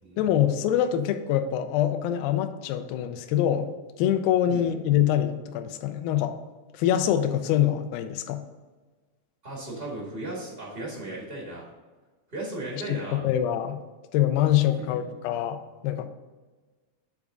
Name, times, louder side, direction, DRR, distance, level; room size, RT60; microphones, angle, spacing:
voice 1, 0.2-3.7 4.0-6.4 6.7-8.4 12.9-13.8 14.1-16.1, left 11 dB, 85° left, 8 dB, 2.4 m, -25 dB
voice 2, 9.4-11.7 12.3-13.2 14.8-14.9, right 1 dB, 80° right, -3 dB, 0.5 m, -36 dB
8.3 x 3.6 x 5.1 m, 1.3 s
omnidirectional pair, 4.1 m